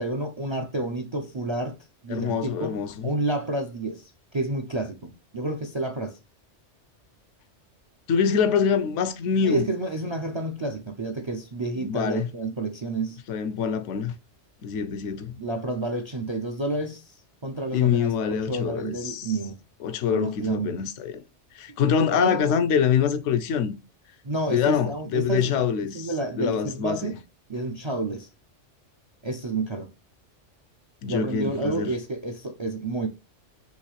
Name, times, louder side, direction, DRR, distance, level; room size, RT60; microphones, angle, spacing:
voice 1, 0.0-1.8 2.0-2.8 3.0-6.2 9.4-13.2 15.4-17.2 17.4-19.6 20.1-20.8 22.1-22.4 24.2-25.6 25.9-27.2 27.5-28.3 29.2-29.9 31.1-33.1, right 2 dB, 45° right, 0.3 m, -30 dB
voice 2, 2.1-3.1 8.1-9.6 11.8-12.3 13.3-14.1 14.6-15.4 17.7-19.3 19.8-21.2 21.5-23.8 24.5-27.1 31.0-31.9, left 7 dB, 85° left, 1.0 m, -25 dB
5.5 x 3.1 x 3.1 m
omnidirectional pair, 1.2 m